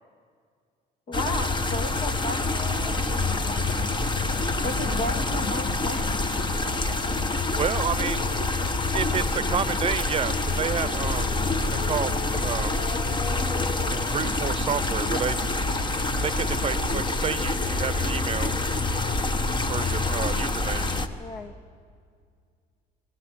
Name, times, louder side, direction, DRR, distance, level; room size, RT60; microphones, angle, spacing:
voice 1, 1.1-3.3 4.6-6.3 21.2-21.6, left 1 dB, 50° left, 7 dB, 2.2 m, -34 dB
sound 1, 1.1-21.1, left 2 dB, 25° left, 1.3 m, -26 dB
voice 2, 7.6-8.2 8.9-11.3 11.8-12.2 12.4-12.8 14.1-15.4 16.2-18.6 19.7-20.9, right 7 dB, 35° right, 16 dB, 0.8 m, -30 dB
26.5 x 17.5 x 8.1 m, 2.1 s
cardioid pair, 110°, 17 cm